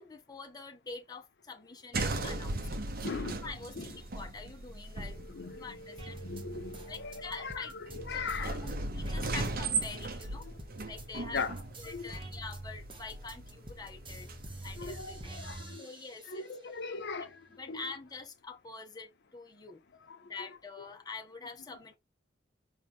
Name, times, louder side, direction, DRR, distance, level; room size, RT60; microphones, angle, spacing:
voice 1, 0.0-2.6 3.4-5.2 5.5-6.2 6.9-7.7 8.0-10.5 10.8-11.4 11.8-14.3 14.6-17.0 17.5-19.8 20.3-22.0, left 4 dB, 20° left, 0.8 m, -46 dB
sound 1, 1.9-15.7, right 3 dB, 55° right, 0.9 m, -38 dB
voice 2, 3.0-3.4 3.8-3.9 4.9-8.9 11.3-11.5 11.9-12.1 14.8-15.9 16.3-17.8 20.1-20.2, left 4 dB, 65° left, 0.6 m, -40 dB
sound 2, 6.0-11.1 11.3-16.5 17.0-18.0, right 1 dB, 30° right, 1.1 m, -47 dB
5.0 x 2.9 x 3.5 m
head